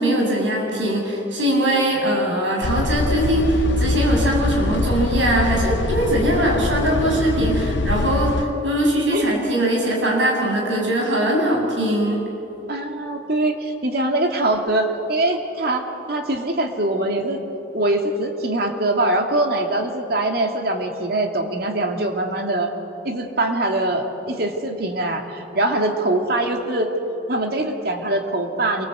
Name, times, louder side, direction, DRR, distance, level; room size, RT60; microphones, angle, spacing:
voice 1, 0.0-12.2, right 1 dB, 90° right, -1 dB, 7.6 m, -21 dB
sound 1, 2.6-8.4, left 2 dB, 80° left, 0.7 m, -23 dB
voice 2, 12.7-17.4 17.7-22.7 23.0-26.9 27.3-28.8, right 1 dB, 55° right, 3 dB, 2.6 m, -23 dB
27.5 x 23.5 x 8.0 m, 2.9 s
head